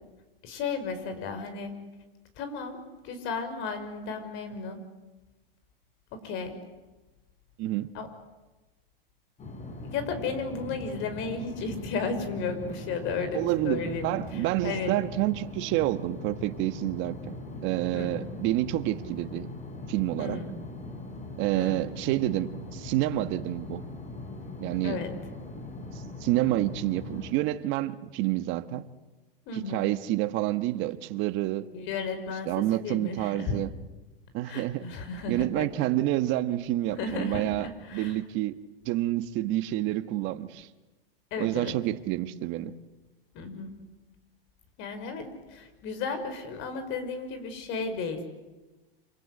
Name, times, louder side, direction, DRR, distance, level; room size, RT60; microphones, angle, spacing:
voice 1, 0.4-1.7 2.4-4.8 6.1-6.6 7.9-8.1 9.8-14.9 17.9-18.2 20.2-20.5 21.5-21.8 24.8-25.1 29.5-29.9 31.7-33.6 34.5-35.7 37.0-38.2 41.3-41.7 43.3-43.9 44.8-48.3, left 4 dB, 40° left, 5.7 m, -34 dB
voice 2, 7.6-7.9 13.3-19.5 19.9-20.4 21.4-23.8 24.6-25.0 26.2-28.9 29.5-31.7 32.5-33.7 34.3-34.9 35.3-37.7 37.9-38.6 38.8-40.7 41.4-42.7, right 15 dB, 40° right, 1.5 m, -28 dB
sound 1, 9.4-27.3, left 2 dB, 25° left, 5.7 m, -41 dB
27.0 x 26.5 x 8.0 m
hypercardioid pair, 120°, 29 cm